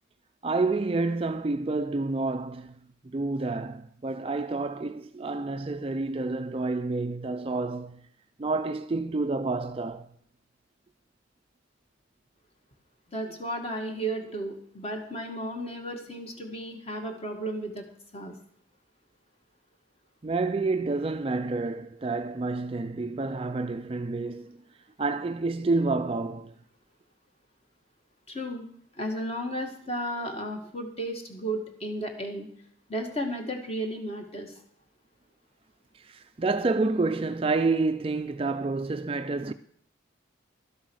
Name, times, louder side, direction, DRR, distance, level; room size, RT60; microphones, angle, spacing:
voice 1, 0.4-2.8 3.0-8.0 8.4-10.1 20.2-24.6 25.0-26.5 35.9-39.5, right 3 dB, 30° right, 0.4 m, -29 dB
voice 2, 13.1-17.8 18.1-18.3 28.3-28.7 29.0-32.5 32.9-34.5, right 1 dB, 30° left, 1.9 m, -34 dB
12.5 x 7.9 x 6.3 m
head